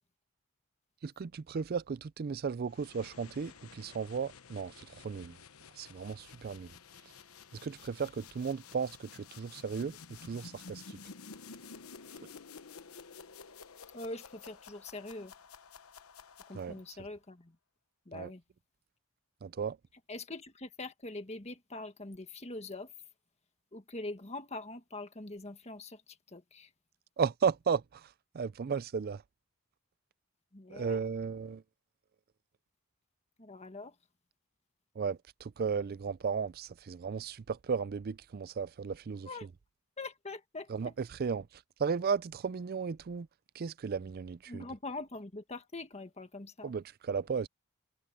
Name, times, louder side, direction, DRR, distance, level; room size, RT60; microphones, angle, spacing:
voice 1, 1.0-5.4 5.8-6.7 7.6-11.0 16.5-16.8 18.1-18.3 19.4-19.8 27.2-29.2 30.7-31.6 35.0-39.3 40.7-43.3 43.5-44.7 46.6-47.5, right 6 dB, 45° right, 0.4 m, -35 dB
sound 1, 2.7-17.0, left 5 dB, 85° left, 1.1 m, -52 dB
voice 2, 13.9-15.3 16.5-17.6 18.0-18.4 20.1-22.9 23.7-26.7 30.5-31.0 33.4-33.9 39.2-39.5 40.0-40.9 44.5-46.7, left 2 dB, 30° left, 1.6 m, -43 dB
head